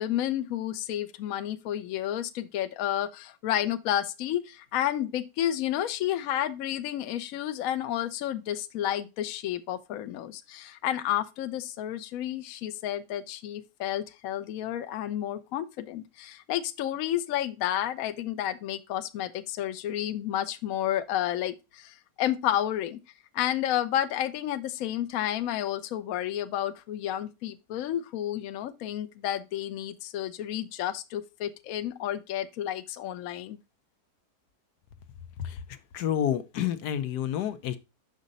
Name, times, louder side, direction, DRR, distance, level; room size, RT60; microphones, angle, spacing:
voice 1, 0.0-23.0 23.3-33.6, left 12 dB, 65° left, 1.0 m, -31 dB
voice 2, 35.9-37.8, left 10 dB, 85° left, 1.3 m, -29 dB
6.5 x 5.1 x 3.9 m
omnidirectional pair, 1.7 m